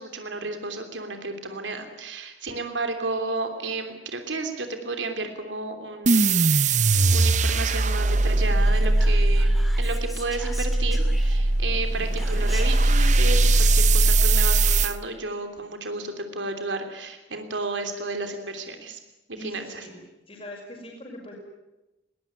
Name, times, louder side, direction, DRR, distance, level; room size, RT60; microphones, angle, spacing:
voice 1, 0.0-9.5 9.8-19.0 19.4-19.9, right 3 dB, 90° right, 6 dB, 3.1 m, -32 dB
sound 1, 6.1-14.9, right 2 dB, 40° right, 0.8 m, -20 dB
Whispering, 8.6-11.6 12.2-12.9, equal, ahead, 2.9 m, -42 dB
voice 2, 19.4-20.0 20.3-21.4, left 1 dB, 30° left, 0 dB, 6.1 m, -41 dB
22.0 x 19.0 x 9.9 m, 0.98 s
head